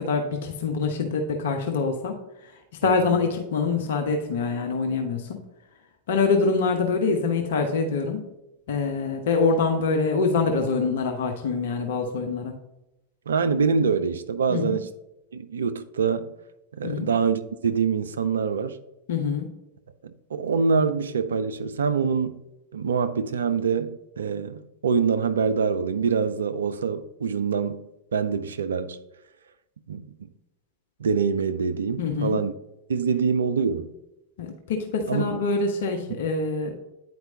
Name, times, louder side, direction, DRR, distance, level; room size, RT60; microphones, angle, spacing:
voice 1, 0.0-2.2 2.4-2.5 2.8-5.4 6.1-8.2 8.7-12.5 14.5-14.8 16.8-17.1 19.1-19.5 32.0-32.4 34.4-36.7, left 4 dB, 55° left, 0.7 m, -25 dB
voice 2, 2.8-3.2 13.3-14.9 15.3-16.3 16.7-18.8 20.0-22.4 22.7-29.0 29.9-30.1 31.0-32.5 32.9-33.9 35.1-35.4, right 5 dB, 70° right, 0.4 m, -25 dB
9.2 x 4.5 x 2.7 m
figure-of-eight pair, 90°, 0 cm